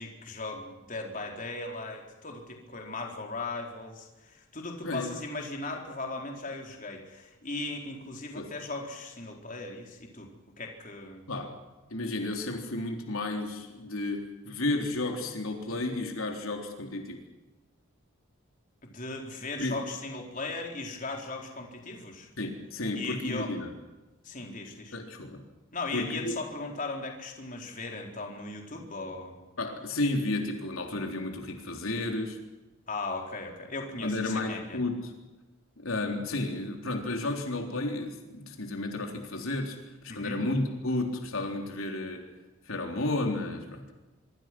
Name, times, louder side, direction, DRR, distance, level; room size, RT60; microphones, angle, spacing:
voice 1, 0.0-10.3 10.6-11.2 18.8-22.3 22.9-23.5 24.2-25.0 25.7-29.4 32.9-34.8 40.1-40.4, left 3 dB, 40° left, 1 dB, 4.3 m, -38 dB
voice 2, 4.8-5.1 8.3-8.5 11.3-11.5 11.9-17.2 19.6-19.8 22.4-23.7 24.9-25.4 25.9-26.4 29.6-32.4 34.0-35.1 35.8-42.3 42.6-43.9, left 2 dB, 80° left, 3 dB, 3.7 m, -32 dB
25.5 x 24.0 x 6.2 m, 1.1 s
head